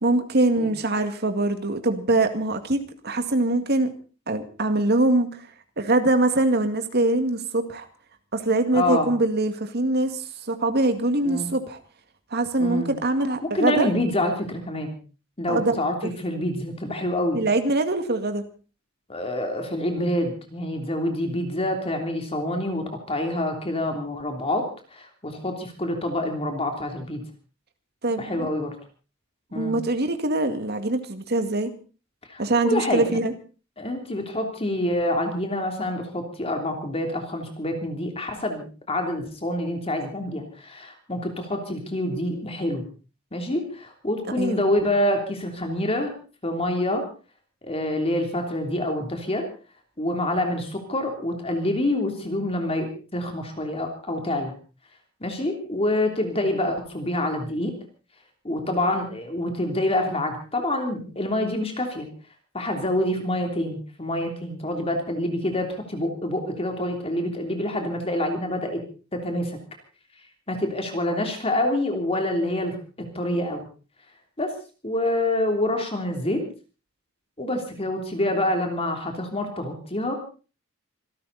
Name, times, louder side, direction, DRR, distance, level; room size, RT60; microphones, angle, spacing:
voice 1, 0.0-3.9 4.3-5.4 5.8-7.9 8.3-11.8 12.3-13.9 15.5-15.8 16.0-16.1 17.3-18.4 28.0-28.5 29.5-31.7 32.4-33.3 44.4-44.6, right 2 dB, 50° right, 8 dB, 2.0 m, -23 dB
voice 2, 8.7-9.1 11.2-11.5 12.6-12.9 13.5-15.0 15.4-17.4 19.1-24.6 24.9-27.2 28.2-28.7 29.5-29.8 32.3-33.2 33.8-42.8 43.3-46.1 46.4-47.0 47.6-49.4 50.0-54.5 55.2-57.7 58.4-62.1 62.5-68.8 69.1-69.6 70.5-72.7 73.1-73.7 74.4-74.5 74.8-76.4 77.4-80.1, left 1 dB, 30° left, 4 dB, 3.1 m, -26 dB
26.0 x 13.0 x 4.1 m, 0.36 s
head